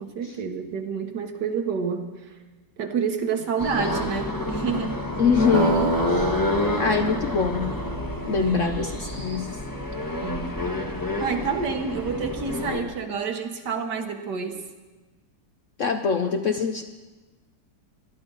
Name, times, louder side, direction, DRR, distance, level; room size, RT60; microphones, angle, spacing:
voice 1, 0.0-2.3 2.8-4.9 8.4-8.7 10.2-10.5 10.8-14.6, right 6 dB, 65° right, 5 dB, 1.7 m, -29 dB
sound 1, 3.6-12.8, left 2 dB, 15° left, 1.0 m, -29 dB
voice 2, 5.2-6.4 6.8-7.8 8.3-9.6 15.8-16.8, left 5 dB, 60° left, 5 dB, 0.8 m, -24 dB
sound 2, 5.5-9.8, right 4 dB, 35° right, 0.8 m, -30 dB
20.0 x 12.5 x 3.9 m, 1.3 s
omnidirectional pair, 2.0 m